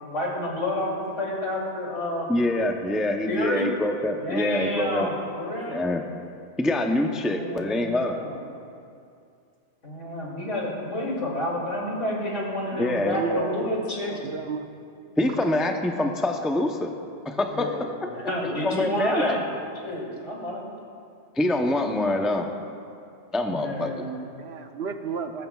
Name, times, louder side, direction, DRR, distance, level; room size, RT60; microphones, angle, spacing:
voice 1, 0.0-2.3 3.3-3.7 4.2-5.8 7.2-8.4 9.8-14.1 17.5-19.5 19.8-20.7 21.7-21.8 23.5-24.2, left 1 dB, 75° left, -3 dB, 3.1 m, -30 dB
voice 2, 2.3-5.1 5.7-6.0 6.6-8.2 12.7-13.2 15.2-16.9 17.2-17.7 18.4-19.4 21.4-22.5 23.3-24.1, left 1 dB, ahead, 3 dB, 0.5 m, -25 dB
voice 3, 13.1-13.6 14.1-14.7 24.4-25.5, right 5 dB, 60° right, 6 dB, 1.0 m, -31 dB
19.0 x 15.0 x 2.4 m, 2.4 s
omnidirectional pair, 1.3 m